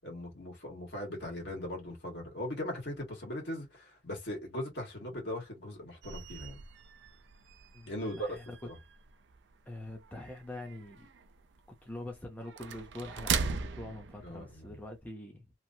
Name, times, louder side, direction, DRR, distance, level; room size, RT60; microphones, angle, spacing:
voice 1, 0.0-6.6 7.9-8.8 14.2-14.8, left 1 dB, 70° left, 1.5 m, -39 dB
sound 1, 6.0-15.0, right 6 dB, 80° right, 0.4 m, -40 dB
voice 2, 7.7-8.6 9.7-11.1 11.8-15.4, left 1 dB, 10° left, 0.6 m, -44 dB
3.0 x 2.4 x 2.7 m
head